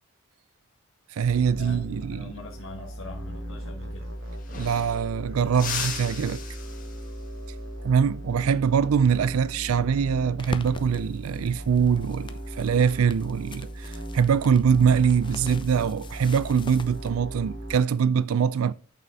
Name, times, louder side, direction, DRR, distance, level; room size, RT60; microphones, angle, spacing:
voice 1, 1.1-2.3 4.5-6.4 7.8-18.7, right 7 dB, 85° right, 0.4 m, -23 dB
sound 1, 1.2-17.8, right 1 dB, 65° right, 1.8 m, -37 dB
voice 2, 2.1-4.1, left 2 dB, 65° left, 1.5 m, -42 dB
sound 2, 3.9-4.0 4.2-5.1 5.5-7.3 9.8-10.1 11.5-12.0, left 6 dB, 40° left, 1.8 m, -36 dB
sound 3, 10.4-17.1, left 2 dB, 25° left, 0.7 m, -43 dB
8.7 x 6.7 x 3.5 m
head